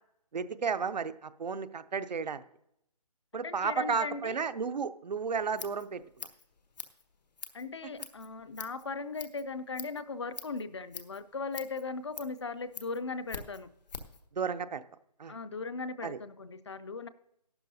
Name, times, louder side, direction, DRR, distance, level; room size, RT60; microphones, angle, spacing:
voice 1, 0.3-2.4 3.3-6.0 14.4-14.8 15.2-15.3 16.0-16.2, right 5 dB, 90° right, 12 dB, 0.7 m, -33 dB
voice 2, 3.4-4.4 7.5-13.7 15.3-17.1, left 4 dB, 45° left, 14 dB, 0.4 m, -38 dB
Scissors, 5.3-14.2, left 5 dB, 85° left, 1.4 m, -46 dB
14.5 x 12.0 x 2.7 m, 0.78 s
hypercardioid pair, 175°, 21 cm